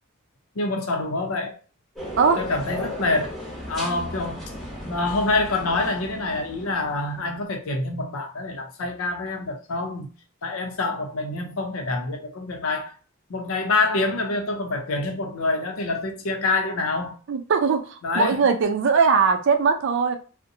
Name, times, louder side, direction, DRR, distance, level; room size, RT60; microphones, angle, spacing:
voice 1, 0.6-1.6 2.4-3.3 3.7-4.4 4.8-10.1 10.4-12.9 13.3-17.2 18.0-18.5, left 3 dB, 85° left, 0.6 m, -26 dB
sound 1, 1.9-7.3, left 1 dB, ahead, 0.8 m, -36 dB
voice 2, 17.3-20.2, right 5 dB, 60° right, 0.4 m, -20 dB
2.6 x 2.1 x 2.6 m
head